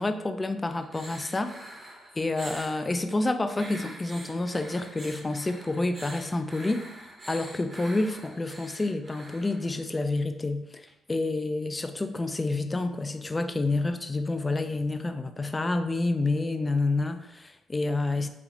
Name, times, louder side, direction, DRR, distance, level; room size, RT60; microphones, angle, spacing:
voice 1, 0.0-1.5 2.2-18.3, left 2 dB, 25° left, 8 dB, 0.3 m, -29 dB
sound 1, 0.7-2.8 3.5-9.9 10.9-11.0, right 1 dB, 30° right, 0.9 m, -45 dB
3.9 x 2.5 x 2.8 m, 0.89 s
cardioid pair, 75°, 0 cm